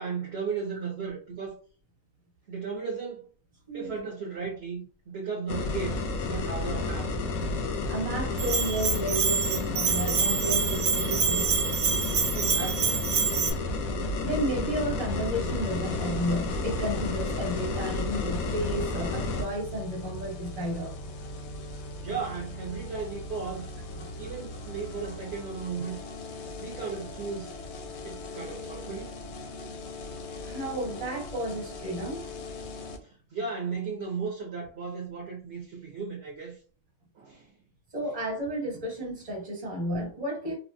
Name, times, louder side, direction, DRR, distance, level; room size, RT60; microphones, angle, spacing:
voice 1, 0.0-1.6 2.5-3.3 3.7-7.1 12.3-13.0 13.3-13.6 14.1-14.3 21.3-21.6 22.0-26.0 26.4-27.5 28.0-29.1 30.0-30.3 32.8-36.6 37.1-37.5, right 5 dB, 55° right, 0.9 m, -36 dB
sound 1, 5.5-19.4, left 3 dB, 90° left, 1.1 m, -31 dB
voice 2, 7.9-11.6 12.1-12.2 14.2-21.0 23.9-24.1 30.5-32.3 37.9-40.6, equal, 25° right, 1.1 m, -32 dB
Bell, 8.4-13.5, right 7 dB, 80° right, 1.0 m, -27 dB
sound 2, 15.8-33.0, left 2 dB, 65° left, 0.7 m, -40 dB
3.1 x 2.1 x 2.6 m
omnidirectional pair, 1.5 m